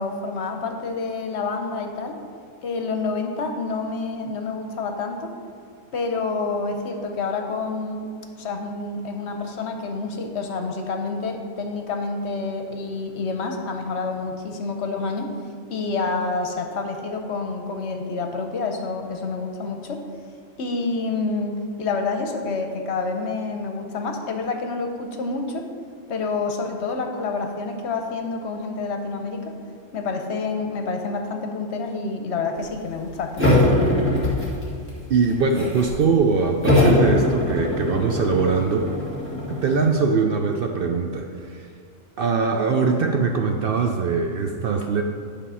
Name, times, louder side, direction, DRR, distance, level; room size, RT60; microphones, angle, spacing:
voice 1, 0.0-2.2 2.6-5.3 5.9-8.1 8.4-15.3 15.7-20.0 20.6-25.6 26.1-29.5 29.9-33.8, left 4 dB, 65° left, 4 dB, 1.0 m, -28 dB
sound 1, 33.4-34.9 35.2-36.0 36.6-39.9, left 1 dB, 10° left, 2.0 m, -21 dB
voice 2, 35.1-38.9 39.5-41.7 42.2-45.0, right 5 dB, 60° right, 3 dB, 0.6 m, -22 dB
9.9 x 3.5 x 5.5 m, 2.2 s
omnidirectional pair, 1.3 m